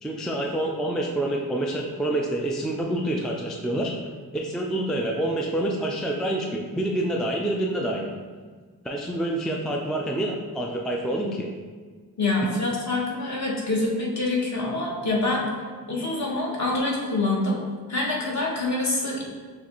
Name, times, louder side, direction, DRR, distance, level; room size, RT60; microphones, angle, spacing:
voice 1, 0.0-3.9 4.3-8.1 8.8-11.5, right 1 dB, ahead, -1 dB, 0.3 m, -27 dB
voice 2, 12.2-15.4 15.9-17.6 17.9-19.2, left 2 dB, 40° left, -4 dB, 1.3 m, -25 dB
6.6 x 2.4 x 2.9 m, 1.5 s
cardioid pair, 75°, 41 cm